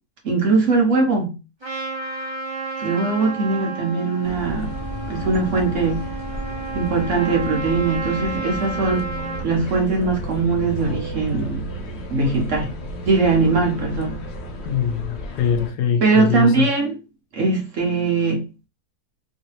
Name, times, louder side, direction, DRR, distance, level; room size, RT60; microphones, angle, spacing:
voice 1, 0.2-1.3 2.8-4.7 5.1-6.0 6.7-9.1 9.4-11.6 12.1-12.7 13.0-14.2 16.0-16.9 17.3-18.4, right 3 dB, 55° right, 1.0 m, -20 dB
Trumpet, 1.6-9.5, right 3 dB, 20° right, 0.8 m, -31 dB
sound 1, 4.2-15.7, left 2 dB, 60° left, 0.7 m, -34 dB
sound 2, 8.7-15.3, right 5 dB, 85° right, 1.3 m, -36 dB
voice 2, 14.7-16.7, left 7 dB, 75° left, 1.2 m, -22 dB
3.1 x 2.8 x 2.9 m
omnidirectional pair, 1.8 m